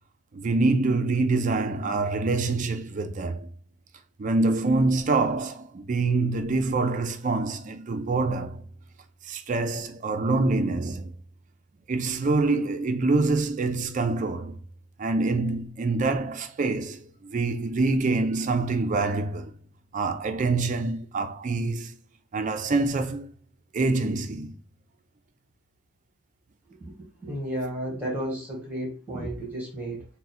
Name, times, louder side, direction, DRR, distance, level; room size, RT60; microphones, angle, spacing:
voice 1, 0.3-3.5 4.2-8.6 9.2-11.1 11.9-14.6 15.0-19.5 19.9-22.0 22.3-23.3 23.7-24.5, right 3 dB, 40° right, 0.4 m, -25 dB
voice 2, 27.2-30.0, right 1 dB, 10° right, 1.5 m, -32 dB
3.6 x 2.1 x 4.1 m
head